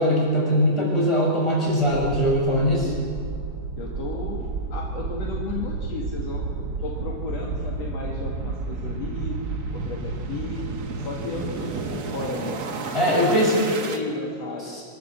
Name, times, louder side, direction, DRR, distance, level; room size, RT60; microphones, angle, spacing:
voice 1, 0.0-2.9 12.9-13.5 14.6-14.8, equal, 10° left, -4 dB, 6.7 m, -21 dB
sound 1, 1.8-14.0, right 4 dB, 50° right, 1.1 m, -31 dB
voice 2, 3.8-6.5 6.8-9.4 9.7-10.6 11.0-12.7 13.0-14.8, left 3 dB, 60° left, -2 dB, 2.9 m, -34 dB
26.0 x 13.0 x 8.0 m, 2.1 s
omnidirectional pair, 3.6 m